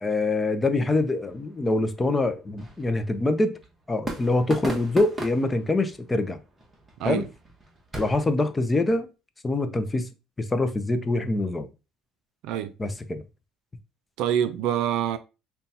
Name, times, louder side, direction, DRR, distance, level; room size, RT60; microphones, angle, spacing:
voice 1, 0.0-3.6 3.9-6.4 7.0-7.3 7.9-9.1 9.4-10.1 10.4-11.7 12.8-13.2, left 2 dB, 15° left, 0.5 m, -25 dB
sound 1, 1.2-8.3, right 1 dB, 15° right, 1.1 m, -39 dB
voice 2, 14.2-15.2, right 10 dB, 75° right, 0.4 m, -25 dB
5.4 x 2.2 x 2.7 m
cardioid pair, 120°, 0 cm